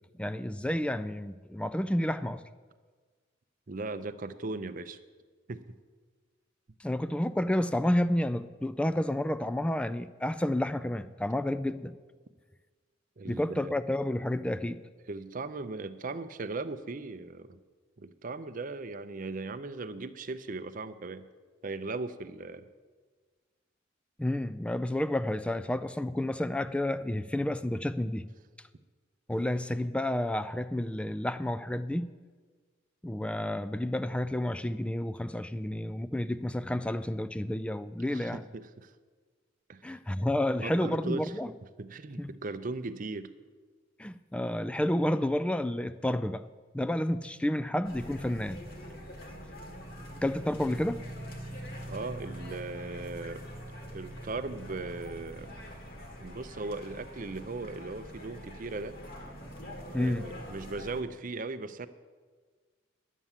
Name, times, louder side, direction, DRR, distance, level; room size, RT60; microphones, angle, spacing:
voice 1, 0.2-2.4 6.8-11.9 13.3-14.8 24.2-28.2 29.3-32.1 33.0-38.4 39.8-41.5 42.2-42.3 44.0-46.4 46.7-48.6 50.2-51.0 59.9-60.2, left 1 dB, 5° left, 13 dB, 0.3 m, -30 dB
voice 2, 3.7-5.0 5.5-5.8 13.2-13.7 15.1-17.6 18.0-21.3 21.6-22.7 38.1-38.9 39.7-39.8 40.6-43.3 51.8-53.5 53.9-55.5 56.2-58.9 59.9-61.9, right 3 dB, 45° right, 12 dB, 0.6 m, -38 dB
sound 1, 47.8-61.0, equal, 50° left, 1.8 m, -44 dB
11.0 x 8.3 x 7.3 m, 1.5 s
head